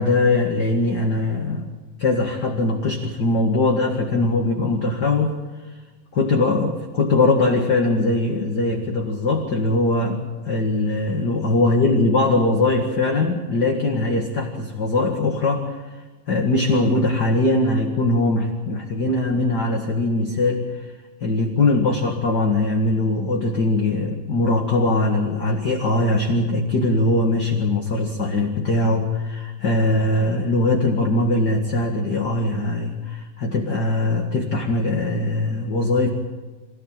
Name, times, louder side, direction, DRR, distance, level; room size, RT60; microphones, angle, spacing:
voice 1, 0.0-1.7 2.0-5.4 6.1-15.8 16.3-20.9 21.2-36.1, left 2 dB, 40° left, 1 dB, 1.9 m, -21 dB
26.5 x 15.0 x 9.0 m, 1.3 s
omnidirectional pair, 4.0 m